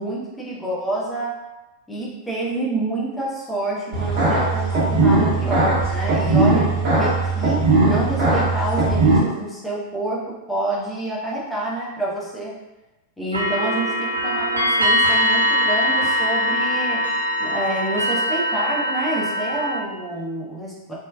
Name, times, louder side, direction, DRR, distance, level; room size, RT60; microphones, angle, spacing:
voice 1, 0.0-1.4 1.9-12.6 13.2-20.9, right 1 dB, 5° left, -6 dB, 0.7 m, -28 dB
sound 1, 3.9-9.2, right 3 dB, 40° right, 1.3 m, -19 dB
sound 2, 13.3-19.8, equal, 80° right, 0.4 m, -22 dB
3.1 x 2.1 x 2.2 m, 1.1 s
figure-of-eight pair, 90°, 0 cm